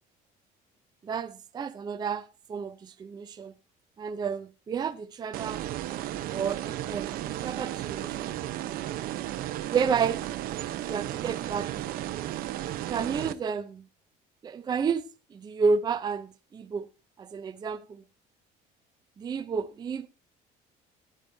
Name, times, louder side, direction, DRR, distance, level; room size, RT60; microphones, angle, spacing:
voice 1, 1.0-3.5 4.0-5.7 6.3-8.4 9.7-10.2 10.8-11.9 12.9-13.9 14.4-16.9 17.2-18.0 19.2-20.1, right 6 dB, 25° right, 0.6 m, -31 dB
sound 1, 5.3-13.3, right 13 dB, 65° right, 0.9 m, -34 dB
17.0 x 10.5 x 2.7 m
cardioid pair, 140°, 16 cm